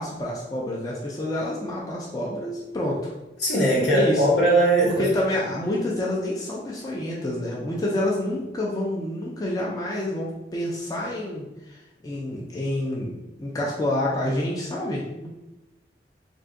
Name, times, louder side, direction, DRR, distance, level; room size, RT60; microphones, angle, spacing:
voice 1, 0.0-3.1 3.8-4.2 4.8-15.3, left 1 dB, 20° left, -4 dB, 0.3 m, -28 dB
voice 2, 3.4-5.1, right 1 dB, 75° left, -5 dB, 1.0 m, -20 dB
2.5 x 2.3 x 3.6 m, 0.98 s
head